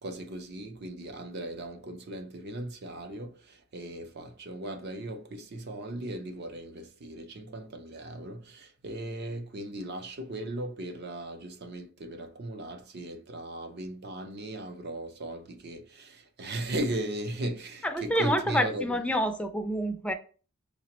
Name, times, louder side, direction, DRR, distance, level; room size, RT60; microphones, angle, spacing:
voice 1, 0.0-19.0, right 1 dB, 50° right, 0.5 m, -37 dB
voice 2, 17.8-20.1, equal, 5° left, 0.4 m, -28 dB
5.7 x 2.0 x 2.9 m
head